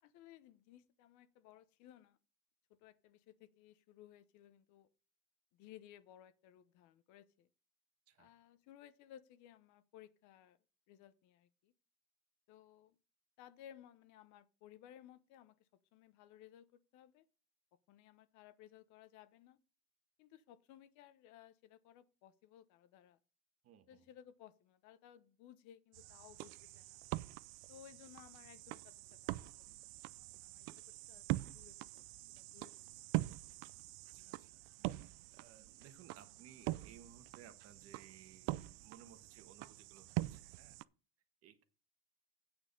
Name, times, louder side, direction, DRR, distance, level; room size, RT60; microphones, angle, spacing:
voice 1, 0.0-2.2 2.8-4.9 5.5-7.5 8.2-10.6 10.9-11.7 12.5-13.0 13.4-17.2 17.9-19.6 20.2-23.2 23.9-27.0 27.7-29.3 29.7-29.8 30.3-32.7, left 11 dB, 65° left, 0.9 m, -60 dB
voice 2, 23.6-24.1 34.1-40.8 41.4-41.6, right 9 dB, 50° right, 1.3 m, -61 dB
sound 1, 25.9-40.8, right 19 dB, 85° right, 0.5 m, -44 dB
8.8 x 6.4 x 5.3 m
cardioid pair, 150°, 32 cm